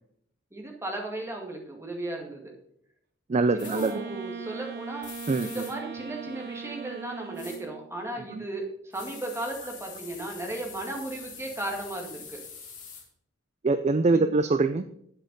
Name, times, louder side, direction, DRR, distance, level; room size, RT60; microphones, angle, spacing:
voice 1, 0.5-2.5 3.5-5.1 5.4-12.4 14.1-14.3, right 2 dB, 15° right, 1 dB, 2.1 m, -35 dB
voice 2, 3.3-4.0 5.3-5.7 8.3-8.4 13.6-14.8, right 3 dB, 35° right, 10 dB, 0.4 m, -24 dB
Wind instrument woodwind instrument, 3.5-7.9, right 6 dB, 50° right, 0.8 m, -40 dB
sound 1, 3.6-3.9 5.0-5.7 7.4-7.6 8.9-13.0, left 6 dB, 40° left, 2.1 m, -44 dB
8.8 x 7.7 x 5.3 m, 0.71 s
head